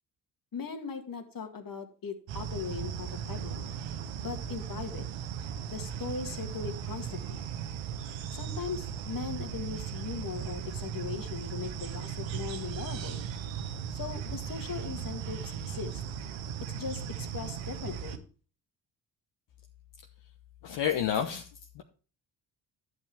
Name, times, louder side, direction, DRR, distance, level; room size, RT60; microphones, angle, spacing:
voice 1, 0.5-3.7 4.2-5.0 5.7-7.4 8.3-13.2 13.9-16.0 16.6-18.3, left 6 dB, 45° left, 6 dB, 2.0 m, -39 dB
sound 1, 2.3-18.2, right 8 dB, 75° right, 1.2 m, -37 dB
voice 2, 20.6-21.5 21.7-21.8, left 9 dB, 65° left, 4 dB, 1.1 m, -29 dB
11.5 x 8.0 x 3.5 m, 0.38 s
hypercardioid pair, 50°, 46 cm